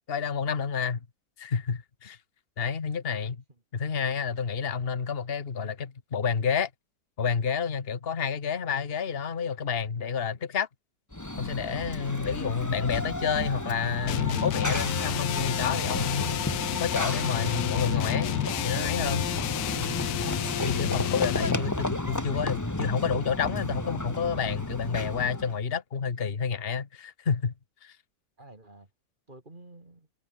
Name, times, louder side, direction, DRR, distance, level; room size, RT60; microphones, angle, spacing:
voice 1, 0.1-1.0 1.4-2.2 2.6-3.4 3.7-6.7 7.2-10.7 11.4-16.4 16.8-18.3 18.6-19.3 20.6-27.5 27.8-28.0, left 6 dB, 35° left, 1.7 m, -29 dB
Run / Train, 11.1-25.6, left 1 dB, 10° left, 1.6 m, -32 dB
sound 1, 14.1-21.7, left 14 dB, 90° left, 1.3 m, -31 dB
voice 2, 20.9-21.5 28.4-28.9 29.3-30.1, right 2 dB, 30° right, 3.2 m, -50 dB
omnidirectional pair, 1.8 m